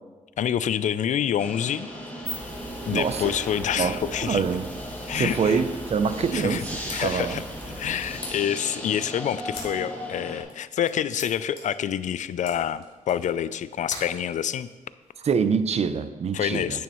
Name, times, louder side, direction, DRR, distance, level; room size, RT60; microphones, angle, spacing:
voice 1, 0.4-1.9 2.8-4.4 5.1-5.6 6.3-6.6 6.9-7.4 7.8-14.7 16.3-16.8, left 9 dB, 65° left, 15 dB, 0.4 m, -27 dB
sound 1, 1.4-10.4, equal, 10° left, 2.4 m, -37 dB
sound 2, 2.0-8.2, equal, 10° right, 2.3 m, -40 dB
voice 2, 2.9-3.2 3.8-3.9 4.2-4.7 5.1-6.7 7.0-7.4 15.2-16.8, right 6 dB, 50° right, 12 dB, 0.6 m, -25 dB
sound 3, 6.5-15.1, left 2 dB, 45° left, 3.2 m, -46 dB
10.5 x 9.1 x 3.1 m, 1.3 s
cardioid pair, 80°, 14 cm